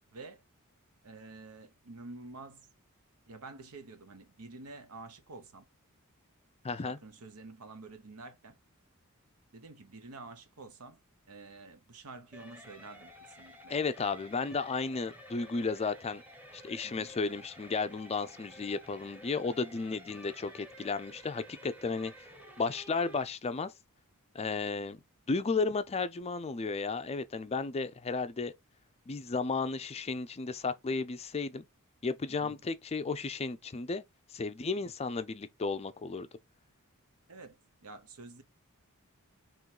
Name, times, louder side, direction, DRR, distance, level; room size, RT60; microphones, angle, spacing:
voice 1, 0.1-0.4 1.0-2.7 3.3-5.7 6.8-8.6 9.5-11.0 11.2-13.8 16.8-17.1 32.3-32.6 37.3-38.4, right 3 dB, 75° right, 0.9 m, -49 dB
voice 2, 6.6-7.0 13.7-16.2 16.5-22.1 22.6-23.7 24.3-25.0 25.3-28.5 29.1-31.6 32.0-34.0 34.3-36.3, left 4 dB, 30° left, 0.4 m, -33 dB
sound 1, 12.3-23.2, equal, 10° right, 1.0 m, -52 dB
3.8 x 3.1 x 4.5 m
head